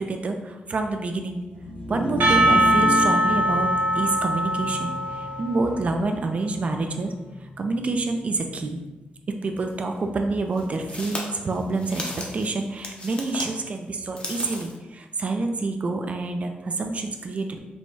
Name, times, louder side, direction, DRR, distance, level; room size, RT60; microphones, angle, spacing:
voice 1, 0.0-1.4 1.9-7.1 7.4-8.8 9.3-17.6, right 3 dB, 40° right, 5 dB, 0.4 m, -27 dB
sound 1, 1.5-7.9, left 1 dB, 50° left, 1.0 m, -32 dB
Percussion, 2.2-6.1, right 1 dB, 70° right, 0.8 m, -22 dB
sound 2, 9.6-9.7 10.5-13.5 14.0-14.8, left 2 dB, 35° left, 0.7 m, -35 dB
4.6 x 2.2 x 4.0 m, 1.1 s
wide cardioid pair, 145°, 3 cm